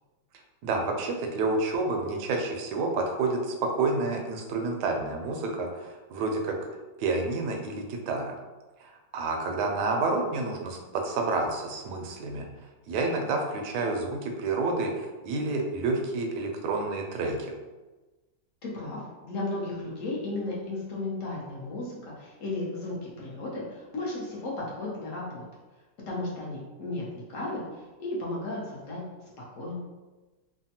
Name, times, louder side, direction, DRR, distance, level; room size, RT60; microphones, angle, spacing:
voice 1, 0.6-6.6 7.0-8.4 8.8-12.5 12.9-17.5, right 3 dB, 75° right, 2 dB, 1.1 m, -29 dB
voice 2, 18.6-25.4 26.1-29.0 29.4-29.8, left 2 dB, 60° left, -5 dB, 0.9 m, -34 dB
3.3 x 2.1 x 2.7 m, 1.2 s
omnidirectional pair, 1.9 m